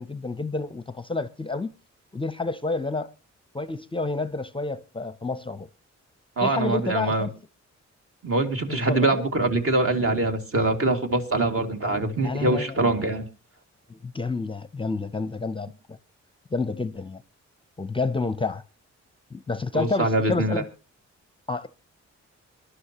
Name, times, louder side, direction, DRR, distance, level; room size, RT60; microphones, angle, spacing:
voice 1, 0.0-1.7 2.1-3.1 3.5-5.7 6.4-7.3 8.7-9.3 12.2-12.8 13.9-16.0 16.5-17.2 17.8-18.6 19.3-20.7 21.5-21.7, left 3 dB, 20° left, 0.6 m, -29 dB
voice 2, 6.4-7.3 8.2-13.3 19.7-20.6, right 2 dB, 50° right, 2.2 m, -24 dB
23.0 x 11.5 x 2.9 m
cardioid pair, 85°, 29 cm